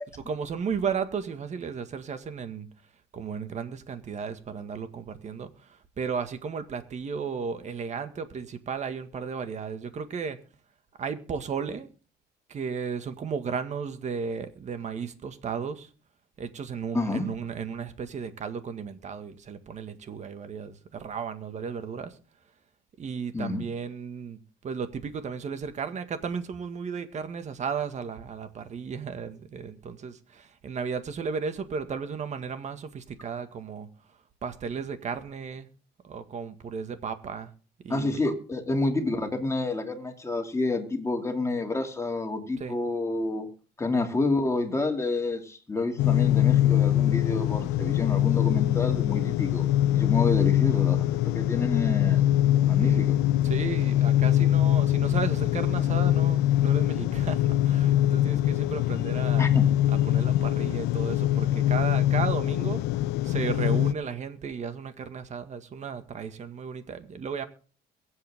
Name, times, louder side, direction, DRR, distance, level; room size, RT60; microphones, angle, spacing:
voice 1, 0.1-2.7 3.1-10.4 11.0-11.9 12.5-15.9 16.4-22.2 23.0-33.9 34.4-35.7 36.0-37.5 37.8-38.2 42.6-42.8 52.7-53.0 53.4-59.5 60.0-62.8 63.2-67.4, right 6 dB, 45° right, 1.9 m, -34 dB
voice 2, 16.9-17.3 23.3-23.6 37.9-43.5 43.8-49.7 49.9-52.2 52.7-53.2 59.4-59.6, left 2 dB, 15° left, 2.7 m, -29 dB
sound 1, 46.0-63.9, left 12 dB, 85° left, 0.6 m, -23 dB
23.0 x 8.1 x 3.7 m
cardioid pair, 110°, 17 cm